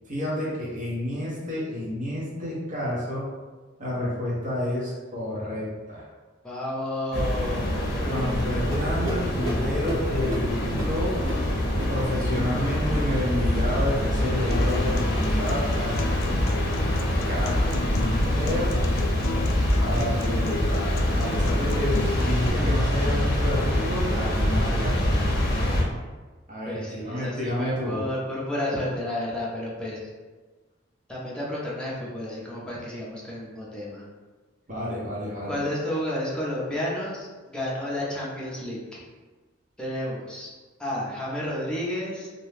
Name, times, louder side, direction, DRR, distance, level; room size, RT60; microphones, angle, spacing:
voice 1, 0.1-3.2 3.8-6.1 8.0-11.2 11.9-15.9 17.3-17.6 18.0-18.7 19.8-25.2 26.5-28.0 34.7-35.6, left 1 dB, 40° right, -6 dB, 0.9 m, -30 dB
voice 2, 6.4-8.1 26.6-30.1 31.1-34.0 35.5-39.0 39.8-40.5 40.8-42.3, left 1 dB, 5° left, -7 dB, 0.6 m, -31 dB
sound 1, 7.1-25.8, left 1 dB, 55° left, 0.6 m, -25 dB
sound 2, 8.7-13.8 14.0-14.4 14.7-15.1 15.4-15.8 16.1-16.5 16.9-17.2 17.7-18.0 18.5-18.7 19.3-19.5 20.1-20.3 21.0-21.1 21.9-22.0, right 1 dB, 80° right, 1.1 m, -37 dB
Acoustic guitar, 14.5-22.5, left 4 dB, 90° left, 0.3 m, -35 dB
2.6 x 2.2 x 3.3 m, 1.3 s
head